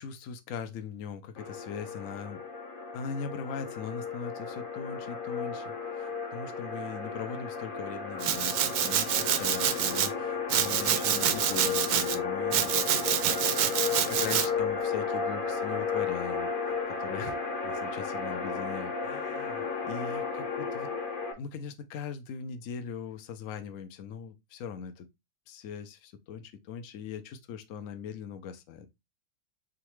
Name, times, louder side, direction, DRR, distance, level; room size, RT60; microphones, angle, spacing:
voice 1, 0.0-2.4 2.9-13.2 14.1-17.4 17.6-20.9 21.3-25.1 25.5-28.9, left 6 dB, 70° left, 0.8 m, -40 dB
sound 1, 1.4-21.3, left 5 dB, 40° left, 0.8 m, -34 dB
Domestic sounds home sounds, 8.2-10.1 10.5-12.2 12.5-14.5, right 10 dB, 75° right, 0.9 m, -27 dB
4.0 x 3.6 x 3.1 m
omnidirectional pair, 2.1 m